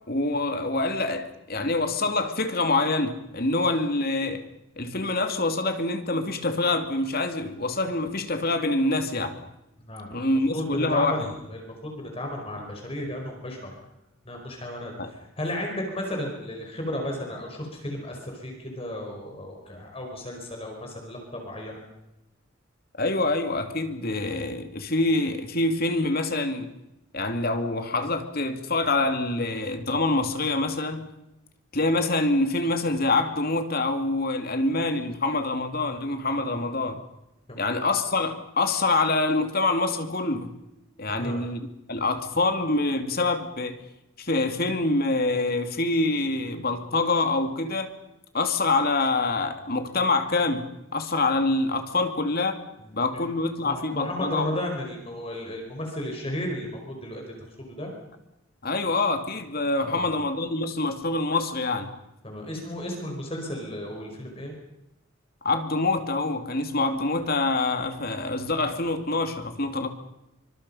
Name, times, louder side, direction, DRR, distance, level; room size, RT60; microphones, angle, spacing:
voice 1, 0.1-4.4 4.8-9.4 10.1-11.3 15.0-15.1 23.0-26.7 27.1-31.0 31.7-37.0 37.6-40.5 41.0-41.6 41.9-43.8 44.2-47.9 48.3-52.6 52.9-54.5 58.6-61.9 65.4-69.9, left 2 dB, 50° left, 7 dB, 2.5 m, -25 dB
voice 2, 9.8-13.7 14.2-21.8 37.5-37.7 41.1-41.4 52.8-52.9 53.6-57.9 59.8-60.1 62.2-64.5, left 1 dB, 30° left, 1 dB, 5.0 m, -34 dB
27.0 x 25.0 x 5.6 m, 0.89 s
head